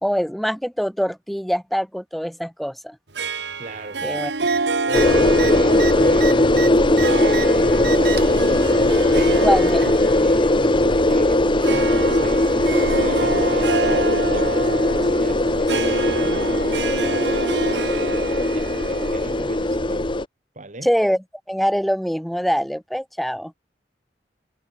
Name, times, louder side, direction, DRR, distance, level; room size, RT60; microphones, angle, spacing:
voice 1, 0.0-3.0 4.0-4.3 9.4-9.8 20.8-21.2 21.5-23.5, equal, ahead, 0.7 m, -23 dB
Harp, 3.2-19.9, right 3 dB, 80° right, 1.8 m, -28 dB
voice 2, 3.6-4.2 4.9-8.7 9.2-9.6 10.0-18.2 18.5-20.2 20.6-20.9, right 2 dB, 45° right, 3.6 m, -37 dB
sound 1, 4.4-4.6 4.9-5.1 5.3-7.5 7.8-8.4 9.3-10.0 11.1-11.2, right 9 dB, 65° right, 1.2 m, -31 dB
sound 2, 4.9-20.2, left 1 dB, 30° left, 1.3 m, -19 dB
head